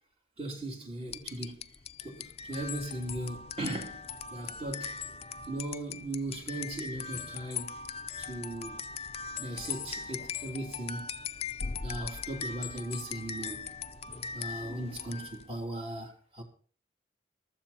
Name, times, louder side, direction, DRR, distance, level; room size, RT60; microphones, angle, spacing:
voice 1, 0.4-1.7 2.0-4.0 4.3-4.9 5.5-7.8 8.2-8.8 9.4-11.1 11.8-13.7 14.3-16.4, right 1 dB, 35° right, 3.2 m, -38 dB
sound 1, 1.1-15.5, left 6 dB, 30° left, 0.5 m, -40 dB
14.5 x 13.5 x 4.3 m
head